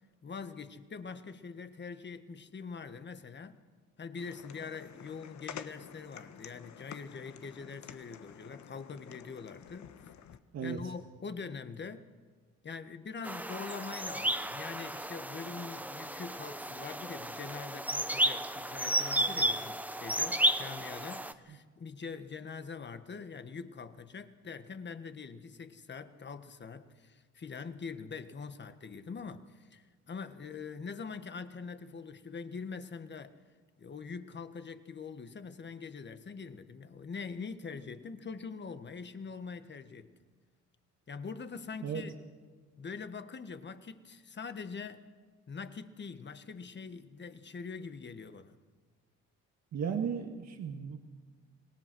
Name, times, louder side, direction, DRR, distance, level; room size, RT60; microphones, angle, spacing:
voice 1, 0.2-3.6 4.0-9.9 10.6-12.1 12.6-33.4 33.8-40.1 41.1-42.1 42.8-45.1 45.5-48.6, left 5 dB, 35° left, 1.5 m, -43 dB
sound 1, 4.2-10.4, left 9 dB, 70° left, 1.3 m, -50 dB
sound 2, 13.2-21.3, right 1 dB, 5° right, 1.0 m, -33 dB
voice 2, 49.7-51.0, right 7 dB, 60° right, 1.8 m, -35 dB
26.0 x 19.5 x 6.2 m
cardioid pair, 90°, 30 cm